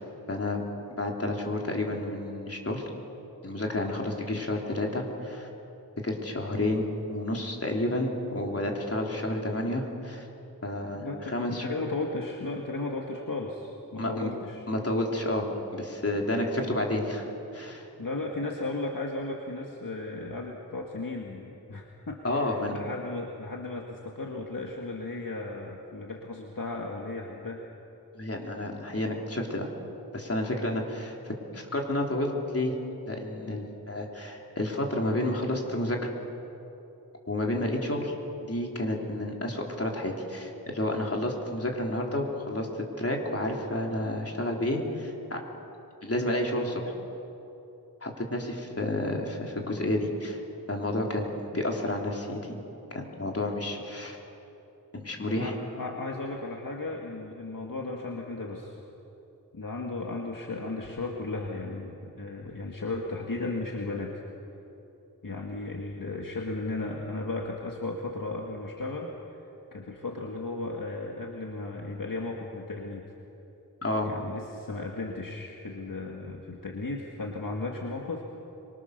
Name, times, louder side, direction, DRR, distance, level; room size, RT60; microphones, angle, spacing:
voice 1, 0.3-0.6 1.0-2.9 3.4-5.5 6.0-10.3 10.6-11.1 11.3-11.7 14.0-14.3 14.7-15.5 15.7-17.3 17.5-17.9 22.2-22.7 28.1-29.7 30.1-32.7 33.1-36.1 37.3-38.1 38.5-42.7 43.0-45.4 46.0-46.9 48.0-50.4 50.7-52.5 52.9-54.2 54.9-55.5 73.8-74.1, left 1 dB, 40° left, 0 dB, 3.7 m, -30 dB
voice 2, 10.9-14.7 16.1-16.8 17.7-27.6 33.5-33.7 55.3-58.8 59.5-64.1 65.2-69.4 69.7-73.1 74.0-78.2, left 2 dB, 60° left, 0 dB, 2.0 m, -35 dB
25.0 x 24.0 x 6.7 m, 3.0 s
wide cardioid pair, 65°, 38 cm